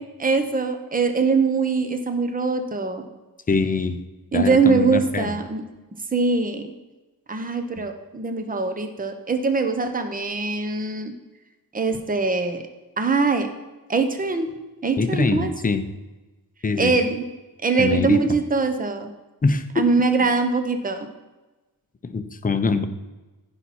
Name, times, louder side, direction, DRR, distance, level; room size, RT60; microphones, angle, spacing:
voice 1, 0.0-3.1 4.3-5.6 6.1-6.7 7.3-11.1 11.7-12.6 13.0-13.5 13.9-14.5 14.8-15.5 16.8-17.2 17.6-19.1 19.8-21.1, right 4 dB, 25° right, 7 dB, 0.9 m, -22 dB
voice 2, 3.5-4.0 4.3-5.4 15.0-15.8 16.6-16.9 17.8-18.2 19.4-19.6 20.2-20.3 22.0-22.8, left 4 dB, 25° left, 8 dB, 0.6 m, -23 dB
15.0 x 5.8 x 4.2 m, 1.1 s
wide cardioid pair, 170°, 37 cm